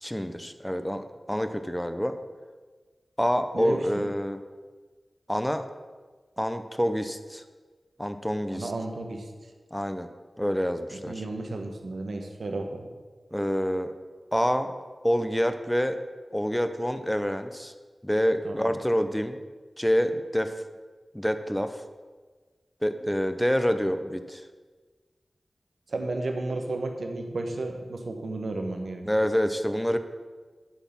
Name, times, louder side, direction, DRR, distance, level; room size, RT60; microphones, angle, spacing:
voice 1, 0.0-2.2 3.2-4.4 5.3-5.7 6.4-7.4 8.0-8.7 9.7-10.1 10.4-11.1 13.3-13.9 14.3-14.7 15.0-16.0 16.3-17.7 18.0-19.4 19.8-20.5 21.1-21.8 22.8-24.4 29.1-30.0, equal, 5° left, 9 dB, 0.7 m, -27 dB
voice 2, 3.5-4.1 8.5-9.3 10.9-12.9 18.4-18.8 25.9-29.0, right 2 dB, 85° right, 4 dB, 1.2 m, -33 dB
12.0 x 4.1 x 7.2 m, 1.4 s
cardioid pair, 45°, 0 cm